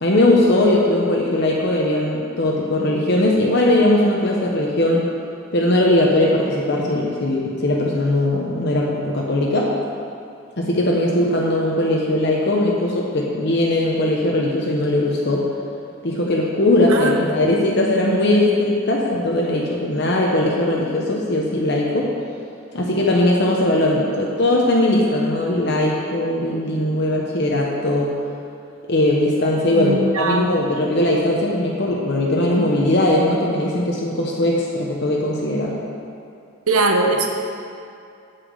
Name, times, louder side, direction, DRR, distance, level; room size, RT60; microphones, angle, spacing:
voice 1, 0.0-5.0 5.5-9.7 10.6-15.4 16.0-22.1 22.7-28.1 28.9-35.8, left 1 dB, 50° left, -2 dB, 0.9 m, -19 dB
voice 2, 16.9-17.2 29.7-30.5 36.7-37.3, right 2 dB, 90° right, 3 dB, 1.0 m, -20 dB
8.1 x 5.9 x 8.0 m, 2.5 s
head